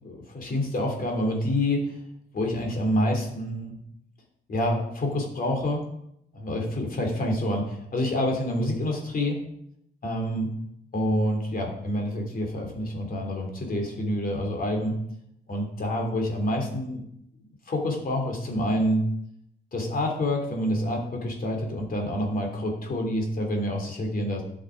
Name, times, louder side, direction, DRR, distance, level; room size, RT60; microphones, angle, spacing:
voice 1, 0.0-2.0 2.3-3.8 4.5-5.9 6.3-9.4 10.0-10.5 10.9-15.0 15.5-17.0 17.7-19.0 19.7-24.4, left 1 dB, 45° left, 1 dB, 3.0 m, -27 dB
11.5 x 6.6 x 4.8 m, 0.76 s
cardioid pair, 90°, 20 cm